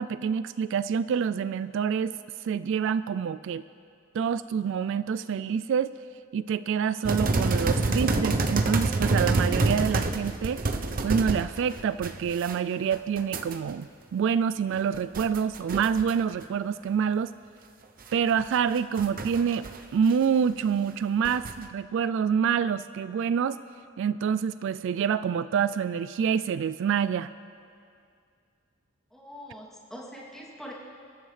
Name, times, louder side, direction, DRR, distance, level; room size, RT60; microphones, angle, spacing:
voice 1, 0.0-2.1 2.4-3.6 4.1-5.9 6.3-10.6 11.0-17.3 18.1-19.7 19.9-23.6 24.0-27.3, right 7 dB, 65° right, 15 dB, 0.3 m, -27 dB
sound 1, 7.0-12.6 12.9-13.6 14.7-16.1 16.4-16.5 18.3-19.8 20.0-20.1 21.2-21.6, right 2 dB, 45° right, 0.8 m, -27 dB
voice 2, 29.1-30.7, equal, ahead, -5 dB, 2.7 m, -43 dB
30.0 x 13.0 x 3.3 m, 2.4 s
head